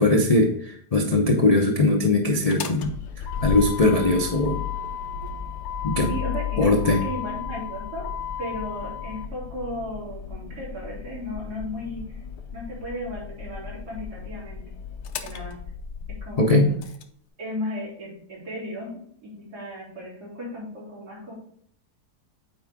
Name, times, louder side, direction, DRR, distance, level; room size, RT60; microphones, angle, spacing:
voice 1, 0.0-2.9 3.4-4.6 5.8-6.1 6.6-7.0 16.4-16.7, left 2 dB, 55° left, 2 dB, 0.4 m, -20 dB
Motor vehicle (road), 2.3-17.0, left 8 dB, 90° left, 1.3 m, -34 dB
voice 2, 6.1-8.1 8.4-12.2 12.5-14.6 15.2-15.6 16.2-16.8 17.4-21.3, equal, 75° right, -7 dB, 3.9 m, -35 dB
8.3 x 4.5 x 3.6 m, 0.62 s
omnidirectional pair, 1.7 m